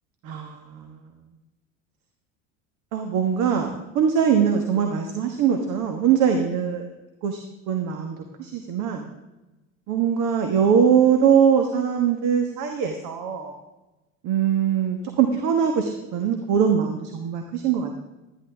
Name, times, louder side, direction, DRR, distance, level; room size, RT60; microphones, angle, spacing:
voice 1, 0.2-1.1 2.9-6.9 7.2-7.4 7.7-9.1 9.9-13.5 14.2-17.9, right 7 dB, 55° right, 5 dB, 1.3 m, -22 dB
12.5 x 10.5 x 3.5 m, 1.1 s
hypercardioid pair, 75°, 38 cm